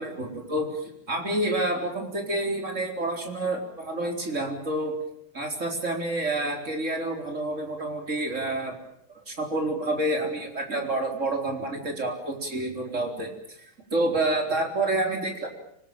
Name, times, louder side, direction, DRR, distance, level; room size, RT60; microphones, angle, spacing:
voice 1, 0.0-5.0 5.3-8.8 9.1-13.3 13.9-15.5, right 2 dB, 45° right, 3 dB, 4.5 m, -28 dB
25.5 x 20.0 x 9.0 m, 0.72 s
omnidirectional pair, 1.8 m